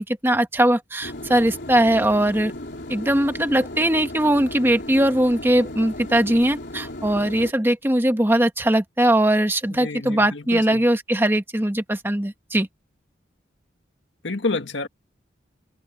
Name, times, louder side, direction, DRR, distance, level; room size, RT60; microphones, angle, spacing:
voice 1, 0.0-2.5 2.9-12.7, right 1 dB, 10° right, 1.3 m, -20 dB
sound 1, 1.0-7.5, left 1 dB, 60° left, 4.0 m, -36 dB
voice 2, 9.7-10.9 14.2-14.9, left 3 dB, 75° left, 1.7 m, -29 dB
head